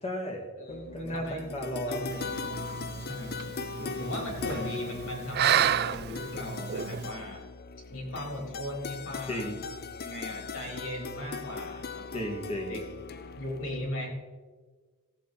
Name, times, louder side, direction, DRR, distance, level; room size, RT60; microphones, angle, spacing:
voice 1, 0.0-2.0 3.8-4.3 9.3-9.6 12.1-12.8, equal, 30° left, 0 dB, 2.3 m, -35 dB
voice 2, 0.6-2.2 3.0-3.5 4.0-7.5 7.9-12.2 12.7-12.8 13.4-14.1, left 1 dB, 70° left, 0 dB, 3.7 m, -38 dB
sound 1, 0.7-13.9, left 5 dB, 45° left, 0.6 m, -40 dB
sound 2, 2.1-7.1, right 9 dB, 50° right, 0.4 m, -31 dB
16.5 x 8.1 x 4.3 m, 1.4 s
head